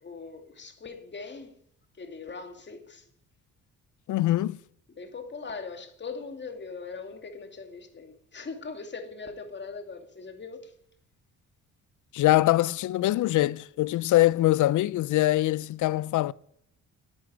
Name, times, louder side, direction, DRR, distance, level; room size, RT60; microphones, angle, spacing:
voice 1, 0.0-1.5 2.0-3.1 4.9-10.7, left 4 dB, 35° left, 2.6 m, -40 dB
voice 2, 4.1-4.6 12.1-16.3, left 16 dB, 70° left, 0.5 m, -23 dB
10.0 x 9.9 x 9.9 m
cardioid pair, 80°, 31 cm